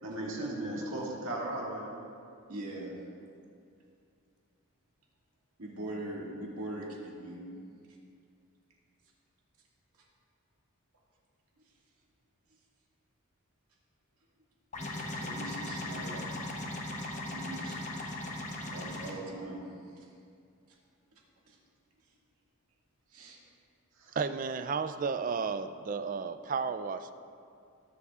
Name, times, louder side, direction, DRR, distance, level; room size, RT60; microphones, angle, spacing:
voice 1, 0.0-1.9 24.0-24.2, right 1 dB, 65° right, -4 dB, 2.0 m, -36 dB
voice 2, 2.5-2.9 5.6-7.5 15.1-16.3 17.2-17.8 18.6-19.6 20.0-20.1 21.5-21.6 23.1-23.4, right 1 dB, 85° right, -3 dB, 2.0 m, -41 dB
sound 1, 14.7-19.1, left 1 dB, 35° left, 0.9 m, -38 dB
voice 3, 24.2-27.1, right 5 dB, 35° right, 11 dB, 0.3 m, -33 dB
19.0 x 6.9 x 2.4 m, 2.4 s
head